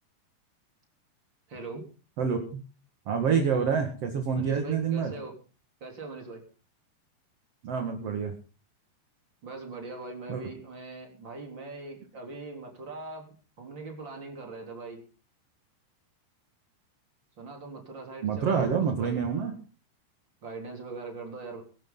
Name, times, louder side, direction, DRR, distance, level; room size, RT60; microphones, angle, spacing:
voice 1, 1.5-1.9 4.3-5.3 5.8-6.4 9.4-15.0 17.4-19.6 20.4-21.6, right 3 dB, 25° right, 2 dB, 3.9 m, -41 dB
voice 2, 3.1-5.1 7.6-8.3 10.3-10.4 18.2-19.5, right 6 dB, 45° right, 4 dB, 2.2 m, -27 dB
22.5 x 12.0 x 4.0 m, 0.36 s
omnidirectional pair, 5.0 m